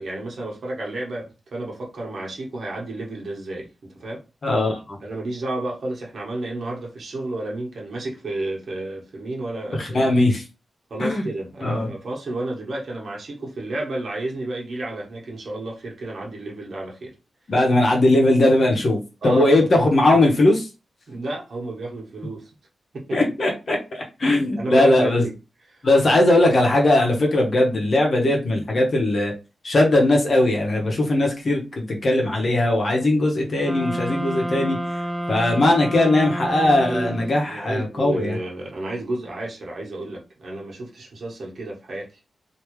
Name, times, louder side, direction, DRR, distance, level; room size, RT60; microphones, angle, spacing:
voice 1, 0.0-4.2 5.0-10.2 10.9-17.1 19.2-19.6 21.1-22.5 22.9-23.2 24.2-25.3 25.7-25.8 36.6-42.1, right 2 dB, 60° right, 1.3 m, -31 dB
voice 2, 4.4-5.0 9.8-10.4 11.0-11.3 11.6-11.9 17.5-19.0 19.2-20.7 23.1-25.2 25.8-29.3 29.6-34.8 35.3-38.4, left 1 dB, 45° left, 1.0 m, -19 dB
sound 1, 33.6-37.5, right 1 dB, 15° right, 0.8 m, -29 dB
3.4 x 2.8 x 3.1 m
wide cardioid pair, 145°, 0 cm